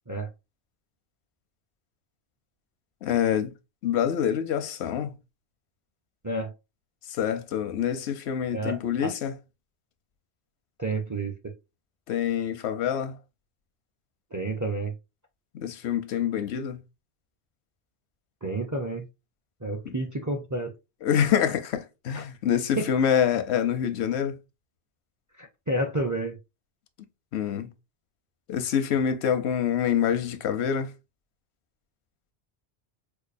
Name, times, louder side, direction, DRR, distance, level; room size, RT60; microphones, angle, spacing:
voice 1, 3.0-3.5 3.8-5.1 7.2-9.4 12.1-13.2 15.5-16.8 19.8-19.9 21.0-24.4 27.3-27.7 28.5-30.9, left 8 dB, 85° left, 0.9 m, -26 dB
voice 2, 8.5-9.1 10.8-11.3 14.3-14.9 18.4-19.1 19.6-20.7 22.1-22.2 22.8-22.9 25.4-26.4, right 2 dB, 25° right, 0.4 m, -30 dB
4.6 x 2.3 x 2.5 m
omnidirectional pair, 1.1 m